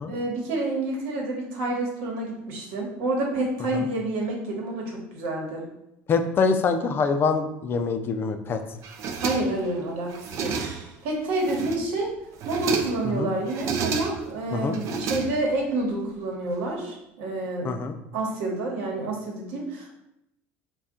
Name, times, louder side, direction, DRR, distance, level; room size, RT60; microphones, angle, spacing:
voice 1, 0.1-5.6 9.2-12.1 12.4-17.7 18.1-19.9, right 2 dB, 80° right, -1 dB, 1.2 m, -28 dB
voice 2, 6.1-8.6 13.1-13.3 14.5-14.8 17.6-18.0, left 5 dB, 35° left, 7 dB, 0.4 m, -25 dB
sound 1, 8.8-9.7 10.1-11.0 11.3-12.0 12.3-13.1 13.5-14.4 14.7-15.7, right 6 dB, 55° right, 0.5 m, -31 dB
4.1 x 2.3 x 3.6 m, 0.84 s
supercardioid pair, 110°, 6 cm